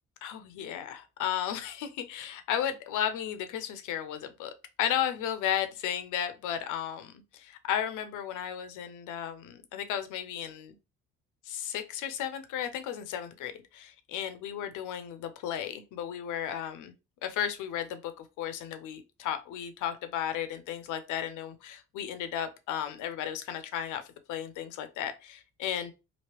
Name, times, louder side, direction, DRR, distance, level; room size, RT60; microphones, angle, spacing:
voice 1, 0.2-4.5 4.8-10.8 11.5-16.9 17.2-24.0 24.3-25.9, left 10 dB, 90° left, 0.6 m, -34 dB
3.0 x 2.7 x 3.0 m
cardioid pair, 90°, 30 cm